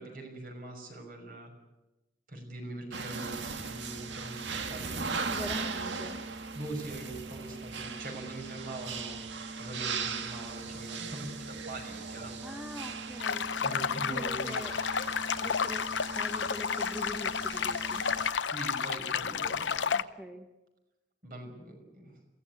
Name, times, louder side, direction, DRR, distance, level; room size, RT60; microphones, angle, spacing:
voice 1, 0.0-1.5 2.3-5.4 6.5-9.2 9.6-12.6 13.6-14.6 18.4-19.9 21.2-22.2, right 2 dB, 50° right, 3 dB, 5.8 m, -42 dB
sound 1, 2.9-18.3, right 4 dB, 80° right, 1.8 m, -39 dB
voice 2, 5.3-6.2 12.4-13.5 14.1-14.8 15.3-18.1 19.9-20.5, equal, 5° right, 4 dB, 1.2 m, -43 dB
sound 2, 13.2-20.0, left 6 dB, 85° left, 0.8 m, -31 dB
22.5 x 16.5 x 9.7 m, 1.0 s
head